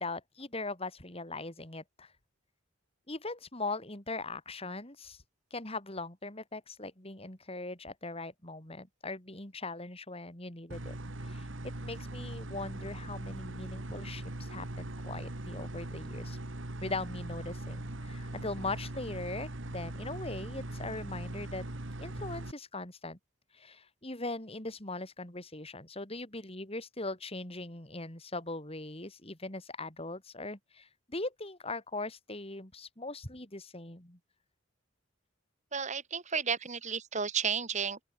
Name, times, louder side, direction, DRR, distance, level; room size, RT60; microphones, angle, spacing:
voice 1, 0.0-2.1 3.1-5.2 5.5-10.9 11.2-16.4 16.8-21.6 22.0-23.2 23.5-34.2, left 2 dB, 30° left, 3.8 m, -40 dB
sound 1, 10.7-22.5, right 1 dB, 70° right, 2.0 m, -40 dB
voice 2, 35.7-38.0, right 6 dB, 35° right, 1.7 m, -32 dB
open air
head